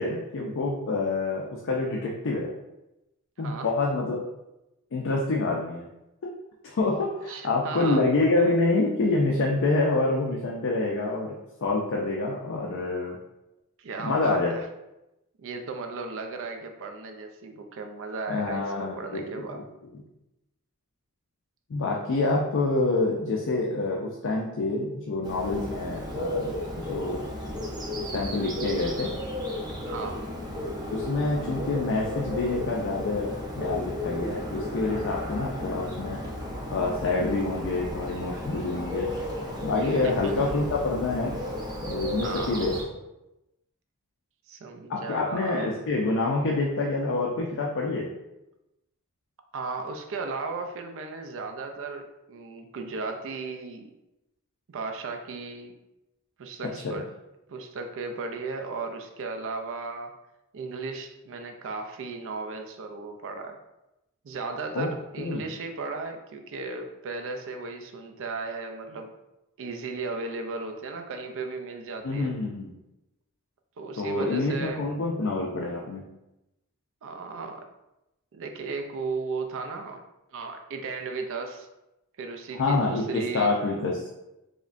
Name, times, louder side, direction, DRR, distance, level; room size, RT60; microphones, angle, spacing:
voice 1, 0.0-2.5 3.4-4.2 4.9-5.9 6.2-6.3 6.6-11.4 11.6-13.2 14.0-14.6 18.3-19.2 19.5-19.6 21.7-27.3 27.9-29.1 30.9-36.2 36.7-39.1 39.6-41.4 41.9-42.7 44.9-48.1 56.8-57.0 64.7-64.9 65.2-65.4 72.0-72.7 74.0-76.0 82.6-84.1, left 3 dB, 60° left, -1 dB, 0.4 m, -27 dB
voice 2, 3.4-3.7 7.3-8.1 13.8-14.7 15.4-19.6 29.9-30.3 39.7-40.5 42.2-42.7 44.5-45.7 49.5-53.9 54.7-55.7 56.4-57.1 57.5-60.1 60.5-63.6 64.2-69.1 69.6-72.4 73.8-74.8 77.0-77.7 78.3-80.0 80.3-81.7 82.2-83.5, right 4 dB, 65° right, 5 dB, 0.4 m, -35 dB
Bird, 25.2-42.8, left 1 dB, 20° right, 0.6 m, -34 dB
4.8 x 2.1 x 2.5 m, 0.94 s
head